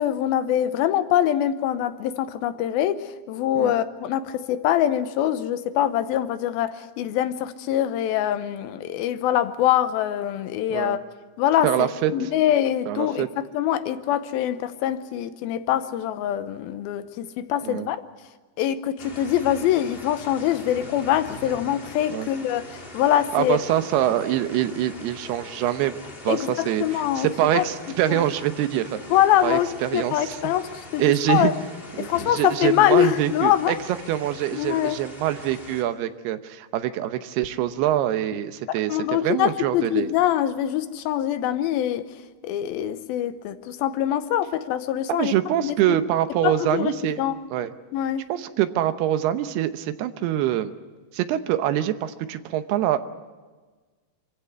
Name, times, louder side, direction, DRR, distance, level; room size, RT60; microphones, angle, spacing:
voice 1, 0.0-11.0 11.4-11.9 12.1-18.0 18.6-23.6 26.3-27.3 27.5-27.6 28.1-28.2 29.1-31.5 32.0-33.7 34.5-35.0 38.9-42.1 42.4-45.3 45.6-46.0 46.4-47.4 47.9-48.3, left 11 dB, 75° left, 11 dB, 2.6 m, -24 dB
voice 2, 11.6-12.3 12.9-13.3 17.6-17.9 22.1-22.3 23.3-26.0 26.2-29.0 29.4-30.5 31.0-31.5 32.0-33.8 34.1-40.1 45.2-47.2 47.5-47.7 48.3-50.7 51.1-53.0, right 12 dB, 80° right, 10 dB, 3.0 m, -24 dB
sound 1, 19.0-35.8, left 1 dB, 20° left, 1.9 m, -42 dB
24.5 x 16.0 x 9.5 m, 1.4 s
omnidirectional pair, 4.6 m